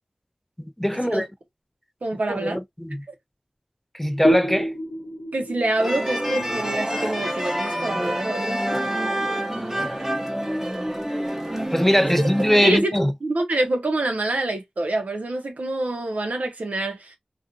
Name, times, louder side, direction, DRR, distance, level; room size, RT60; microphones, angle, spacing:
voice 1, 0.8-1.3 2.3-3.0 3.9-4.7 11.7-13.1, equal, 10° left, 0.3 m, -21 dB
voice 2, 2.0-2.6 3.1-3.2 5.3-8.8 9.3-9.4 12.6-17.2, right 2 dB, 80° right, 0.7 m, -26 dB
sound 1, 4.2-7.6, equal, 75° left, 0.8 m, -28 dB
sound 2, 5.8-12.8, equal, 15° right, 0.8 m, -27 dB
2.5 x 2.4 x 2.3 m
wide cardioid pair, 45°, 3 cm